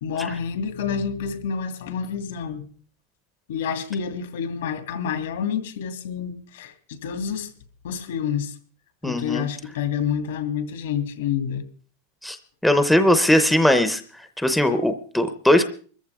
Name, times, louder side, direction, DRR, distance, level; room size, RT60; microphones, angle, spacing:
voice 1, 0.0-2.6 3.5-7.5 7.8-8.5 9.0-11.6, left 7 dB, 75° left, 2.4 m, -28 dB
voice 2, 9.0-9.5 12.2-12.4 12.6-14.0 14.4-15.6, left 1 dB, ahead, 0.6 m, -19 dB
24.5 x 14.5 x 3.6 m
supercardioid pair, 175°, 0 cm